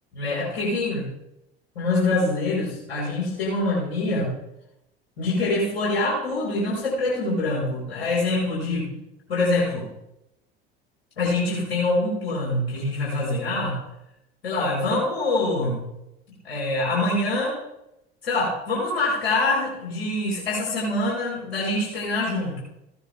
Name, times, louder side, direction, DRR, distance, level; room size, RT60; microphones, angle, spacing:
voice 1, 0.1-1.1 1.7-4.3 5.2-8.9 9.3-9.9 11.2-13.8 14.4-15.9 16.4-17.6 18.2-22.6, left 2 dB, 80° left, -5 dB, 5.1 m, -25 dB
15.5 x 9.8 x 3.6 m, 0.85 s
hypercardioid pair, 75°, 31 cm